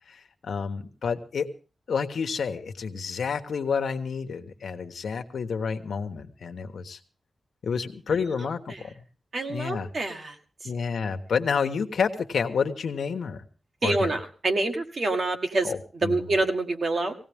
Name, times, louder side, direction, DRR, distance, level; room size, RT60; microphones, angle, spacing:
voice 1, 0.1-1.5 1.9-7.0 7.6-8.9 9.5-9.9 10.6-13.4 13.8-14.1 15.6-16.3, left 6 dB, 80° left, 6 dB, 1.3 m, -29 dB
voice 2, 9.3-10.4 13.8-15.7 16.0-17.2, right 2 dB, 45° right, 4 dB, 1.8 m, -26 dB
19.0 x 17.0 x 3.6 m, 0.36 s
wide cardioid pair, 155°, 0 cm